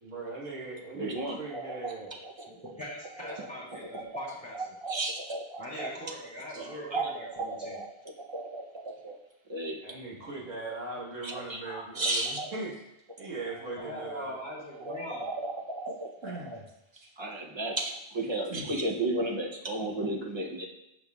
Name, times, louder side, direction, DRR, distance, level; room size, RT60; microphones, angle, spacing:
voice 1, 0.0-2.1 6.5-6.6 9.8-12.8 13.2-14.3 16.2-16.6 16.9-17.1 18.5-18.7, right 3 dB, 85° right, -3 dB, 1.7 m, -39 dB
voice 2, 0.9-2.5 3.2-4.3 4.5-6.0 6.6-7.9 8.2-9.2 9.5-9.8 11.2-12.5 14.0-14.1 14.8-16.6 17.2-20.7, right 2 dB, 35° right, 1 dB, 0.4 m, -34 dB
voice 3, 2.5-4.6 5.6-7.8 13.7-15.2, equal, 5° left, -5 dB, 2.1 m, -41 dB
7.7 x 5.3 x 2.3 m, 0.86 s
omnidirectional pair, 1.3 m